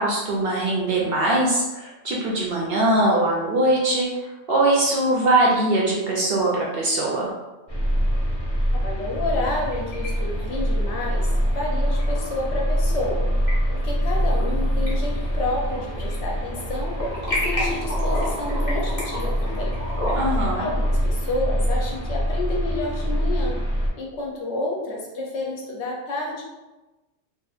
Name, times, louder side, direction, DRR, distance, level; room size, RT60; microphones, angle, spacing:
voice 1, 0.0-4.1 4.5-7.3 20.1-20.6, right 2 dB, 65° right, -3 dB, 0.7 m, -21 dB
sound 1, 7.7-23.9, equal, 50° left, 0.4 m, -24 dB
voice 2, 8.8-11.3 11.5-13.2 13.7-17.0 17.3-19.7 20.5-23.6 24.0-26.4, left 2 dB, 70° left, -2 dB, 0.8 m, -30 dB
sound 2, 9.4-10.1 10.4-10.5 12.0-12.1 13.1-13.5 14.0-14.5 14.9-16.2 16.5-20.4, left 1 dB, 20° left, 0.8 m, -30 dB
2.7 x 2.4 x 2.4 m, 1.1 s
omnidirectional pair, 1.3 m